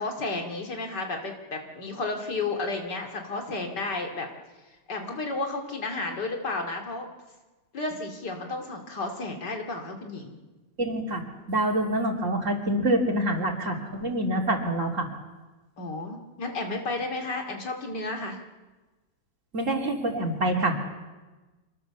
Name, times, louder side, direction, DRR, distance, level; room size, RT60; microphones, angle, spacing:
voice 1, 0.0-4.3 4.9-7.1 7.7-10.3 15.8-18.4, left 3 dB, 80° left, 3 dB, 3.3 m, -32 dB
voice 2, 10.8-11.2 11.5-15.1 19.5-20.8, right 1 dB, 45° right, 1 dB, 3.4 m, -26 dB
26.0 x 21.0 x 7.1 m, 1.2 s
omnidirectional pair, 1.8 m